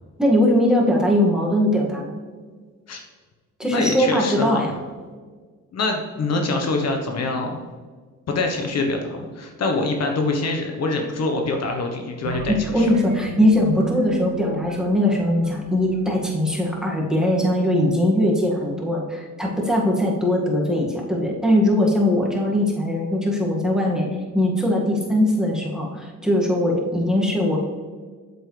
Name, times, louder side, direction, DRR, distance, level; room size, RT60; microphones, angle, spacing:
voice 1, 0.2-2.1 3.6-4.7 12.5-24.1 24.3-27.6, left 1 dB, ahead, -2 dB, 2.1 m, -20 dB
voice 2, 3.6-4.7 5.7-7.6 8.3-12.9, left 3 dB, 55° left, 3 dB, 1.3 m, -25 dB
sound 1, 12.3-16.9, right 5 dB, 85° right, 1.1 m, -36 dB
8.1 x 7.4 x 3.4 m, 1.5 s
cardioid pair, 90°, 30 cm